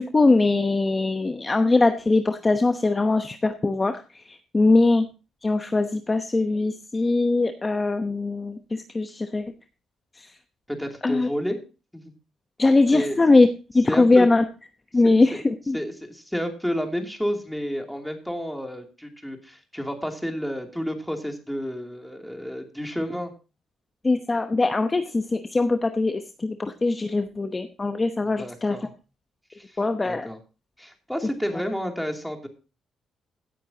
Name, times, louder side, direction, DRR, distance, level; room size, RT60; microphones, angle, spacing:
voice 1, 0.0-5.1 5.4-9.4 10.2-10.3 11.0-11.3 12.6-13.5 13.7-14.4 14.9-15.8 24.0-28.8 29.8-30.3, left 3 dB, 25° left, 7 dB, 0.9 m, -21 dB
voice 2, 10.7-11.6 11.9-12.0 12.9-13.2 13.9-14.3 15.0-15.1 15.7-23.3 28.2-28.9 29.5-30.4 30.8-32.5, equal, ahead, 3 dB, 2.8 m, -31 dB
16.5 x 9.1 x 2.8 m, 0.32 s
cardioid pair, 90°, 0 cm